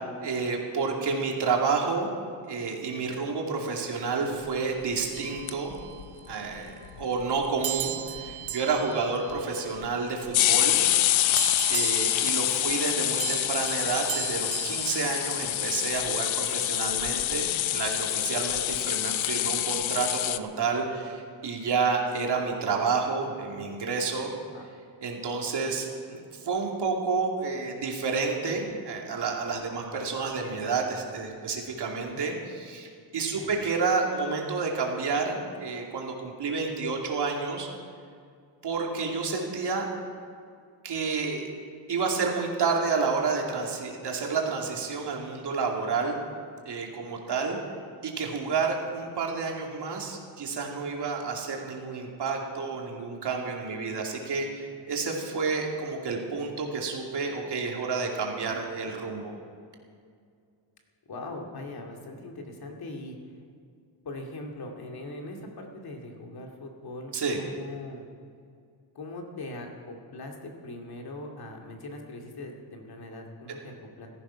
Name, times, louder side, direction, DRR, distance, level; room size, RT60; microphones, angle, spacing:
voice 1, 0.2-2.1 2.4-5.8 6.3-10.8 11.7-24.3 25.0-37.7 38.6-39.9 40.8-41.5 41.9-46.2 46.6-47.6 48.0-59.3 67.1-67.4, right 4 dB, 60° right, 0 dB, 2.8 m, -30 dB
sound 1, 5.1-6.4 7.6-10.3 11.4-15.9, right 14 dB, 75° right, 1.0 m, -38 dB
sound 2, 5.2-6.0 6.3-6.4 6.6-6.7 6.8-7.4 7.8-7.9 8.2-8.5 9.3-9.4 10.3-20.4, left 13 dB, 85° left, 0.7 m, -26 dB
voice 2, 12.4-12.8 24.5-24.6 33.3-33.5 61.1-63.2 64.0-68.0 68.9-74.1, left 2 dB, 50° left, 1 dB, 2.4 m, -41 dB
16.0 x 14.0 x 5.8 m, 2.2 s
wide cardioid pair, 145°, 46 cm